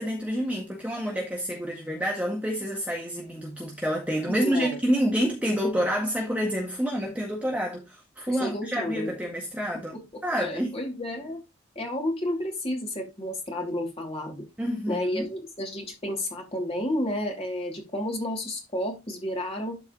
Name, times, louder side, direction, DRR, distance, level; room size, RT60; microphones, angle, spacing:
voice 1, 0.0-10.7 14.6-15.3, equal, 5° right, 1.7 m, -28 dB
voice 2, 4.2-4.8 8.3-9.1 9.9-10.0 10.4-11.4 11.7-14.5 14.9-19.8, left 1 dB, 30° left, 2.8 m, -31 dB
12.5 x 4.6 x 3.1 m
head